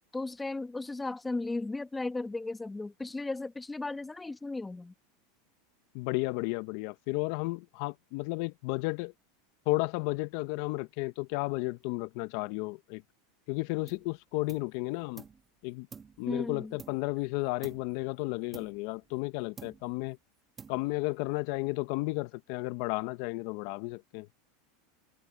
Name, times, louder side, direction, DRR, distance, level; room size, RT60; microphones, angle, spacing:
voice 1, 0.1-4.9 16.3-16.7, left 2 dB, 10° left, 1.1 m, -35 dB
voice 2, 5.9-9.1 9.7-13.0 13.5-15.2 15.6-15.9 16.2-20.2 20.7-24.3, left 23 dB, 60° left, 0.7 m, -33 dB
sound 1, 13.9-14.2 14.5-15.5 15.9-17.2 17.6-18.0 18.5-19.3 19.6-20.1 20.6-21.1, right 6 dB, 20° right, 1.7 m, -51 dB
supercardioid pair, 125°, 0 cm